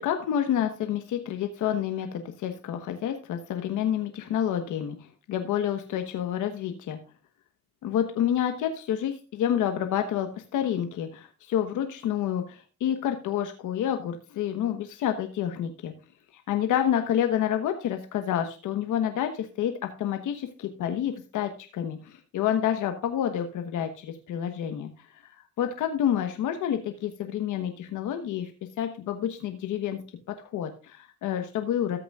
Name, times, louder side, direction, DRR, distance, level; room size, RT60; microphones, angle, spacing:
voice 1, 0.0-7.0 7.8-15.9 16.3-25.3 25.6-28.5 28.8-30.0 30.3-32.0, left 10 dB, 85° left, 6 dB, 1.2 m, -29 dB
14.0 x 8.0 x 2.4 m, 0.34 s
cardioid pair, 90°, 30 cm